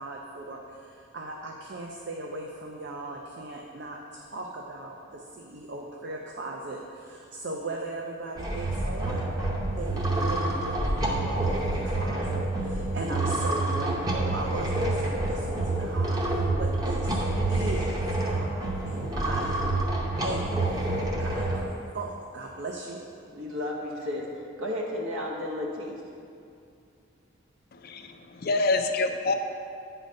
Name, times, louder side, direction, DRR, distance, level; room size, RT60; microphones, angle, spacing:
voice 1, 0.0-9.2 9.7-17.2 17.5-19.6 20.2-20.6 21.2-23.0, right 2 dB, 55° right, 0 dB, 0.5 m, -38 dB
sound 1, 8.4-21.6, right 2 dB, 20° right, 0.8 m, -28 dB
voice 2, 23.3-26.0, left 1 dB, 80° right, -2 dB, 1.1 m, -33 dB
voice 3, 27.7-29.3, left 3 dB, 45° left, 7 dB, 0.4 m, -27 dB
9.3 x 3.9 x 5.2 m, 2.5 s
head